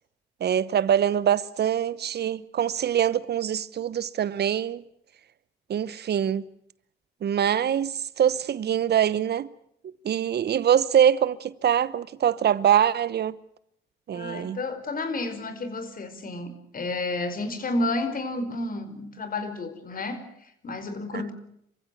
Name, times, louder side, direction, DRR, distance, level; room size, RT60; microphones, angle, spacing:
voice 1, 0.4-4.8 5.7-6.4 7.2-9.5 10.0-13.4 14.1-14.6 21.1-21.2, right 9 dB, 55° right, 0.9 m, -24 dB
voice 2, 14.1-21.3, left 2 dB, 45° left, 5.0 m, -31 dB
27.5 x 15.5 x 9.3 m
cardioid pair, 90°, 20 cm